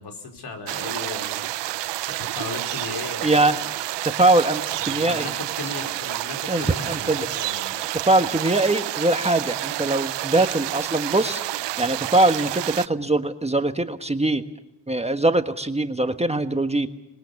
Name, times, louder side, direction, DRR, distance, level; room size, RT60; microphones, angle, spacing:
voice 1, 0.0-3.6 4.9-7.7, left 4 dB, 65° left, 4 dB, 4.9 m, -37 dB
sound 1, 0.7-12.9, right 15 dB, 80° right, 0.8 m, -29 dB
voice 2, 3.2-3.5 4.0-5.2 6.5-7.3 8.0-11.4 11.8-14.4 14.9-16.9, right 2 dB, 15° right, 7 dB, 1.4 m, -22 dB
26.0 x 21.5 x 7.1 m, 0.91 s
cardioid pair, 75°, 42 cm